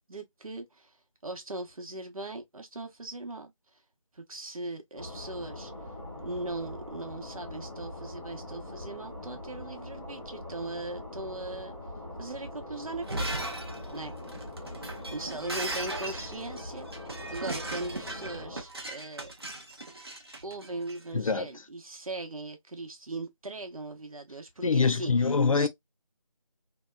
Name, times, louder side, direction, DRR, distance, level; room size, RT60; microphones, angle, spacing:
voice 1, 0.0-3.8 4.1-5.7 6.2-11.7 12.1-13.5 13.9-14.1 15.1-19.3 20.4-25.7, right 2 dB, 75° right, 0.9 m, -39 dB
sound 1, 5.0-18.6, left 1 dB, ahead, 0.9 m, -42 dB
Shatter, 12.9-21.0, right 2 dB, 45° right, 0.7 m, -38 dB
voice 2, 21.1-21.4 24.6-25.7, left 4 dB, 70° left, 0.4 m, -24 dB
2.7 x 2.2 x 2.2 m
figure-of-eight pair, 175°, 18 cm